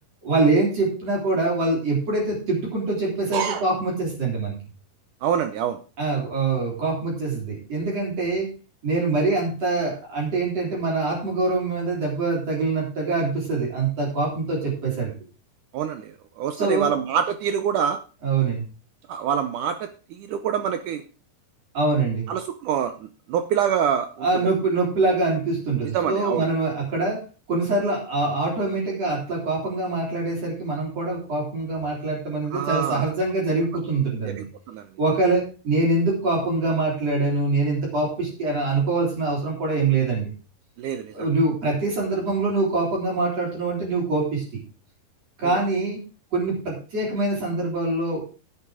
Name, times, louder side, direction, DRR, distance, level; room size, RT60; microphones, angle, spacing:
voice 1, 0.2-4.5 6.0-8.5 8.8-15.1 16.6-16.9 18.2-18.6 21.7-22.3 24.2-34.4 35.0-40.3 41.1-44.4 45.4-46.0 46.3-48.2, right 3 dB, 40° right, -3 dB, 4.7 m, -24 dB
voice 2, 3.3-3.6 5.2-5.8 15.7-18.0 19.1-19.8 20.1-21.0 22.3-24.3 25.9-26.4 32.5-33.1 34.4-34.9 40.8-41.3, right 8 dB, 80° right, 9 dB, 1.9 m, -26 dB
11.5 x 8.6 x 4.9 m, 0.36 s
omnidirectional pair, 4.5 m